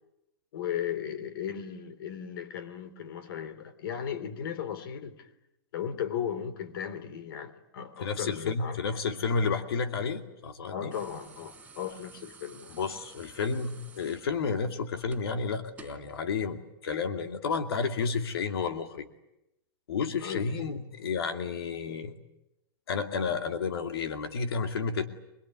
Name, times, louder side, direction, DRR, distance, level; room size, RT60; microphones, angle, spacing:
voice 1, 0.5-5.3 5.7-8.8 10.7-12.7 20.2-20.5, left 9 dB, 65° left, 3.2 m, -36 dB
voice 2, 8.0-11.0 12.7-19.1 19.9-22.1 22.9-25.1, left 5 dB, 85° left, 2.5 m, -31 dB
sound 1, 10.9-16.1 17.4-17.6, right 4 dB, 10° right, 4.2 m, -52 dB
25.5 x 22.0 x 9.7 m
hypercardioid pair, 135°, 13 cm